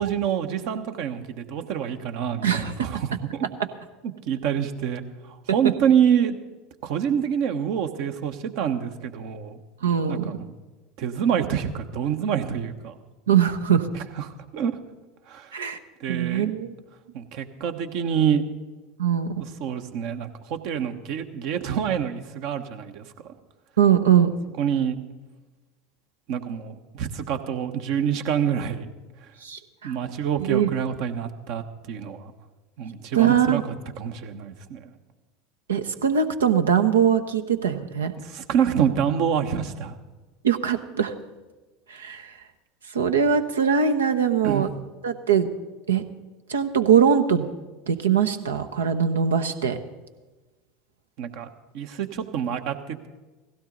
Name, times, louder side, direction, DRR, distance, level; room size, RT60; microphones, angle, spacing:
voice 1, 0.0-3.5 4.0-6.4 6.8-9.6 10.1-10.5 11.0-13.0 13.9-14.8 15.3-15.5 16.0-16.5 17.1-18.4 19.4-23.0 24.6-25.0 26.3-28.9 29.8-32.3 32.8-33.6 34.0-34.9 38.2-40.0 44.4-44.7 51.2-51.5 51.7-53.1, right 8 dB, 55° right, 8 dB, 1.2 m, -26 dB
voice 2, 9.8-10.3 13.3-13.9 15.5-15.8 16.1-16.7 19.0-19.3 23.8-24.3 29.4-29.9 30.4-30.7 33.2-33.6 35.7-38.1 40.4-41.1 41.9-42.3 42.9-44.7 45.0-45.5 45.9-46.0 46.5-47.5 47.9-49.8, right 8 dB, 75° right, 9 dB, 1.0 m, -21 dB
17.0 x 16.0 x 4.0 m, 1.2 s
figure-of-eight pair, 75°, 0 cm